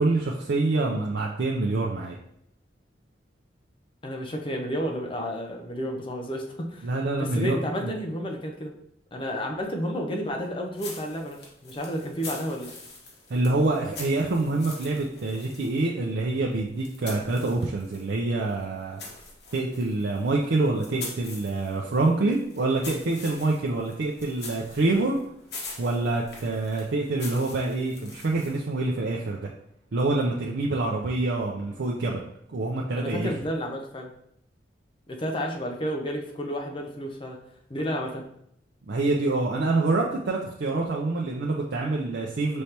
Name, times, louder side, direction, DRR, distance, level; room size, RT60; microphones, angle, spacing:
voice 1, 0.0-2.2 6.8-7.9 13.3-19.0 19.5-25.2 25.8-29.5 29.9-32.2 32.5-33.3 38.9-42.6, right 2 dB, 85° right, -2 dB, 0.5 m, -26 dB
voice 2, 4.0-6.9 7.2-8.7 9.1-12.7 33.0-34.1 35.1-37.4 37.7-38.3, equal, 30° left, 2 dB, 0.6 m, -31 dB
sound 1, 10.7-18.1 18.5-28.7, left 3 dB, 70° left, 1.2 m, -44 dB
5.3 x 3.3 x 2.9 m, 0.74 s
head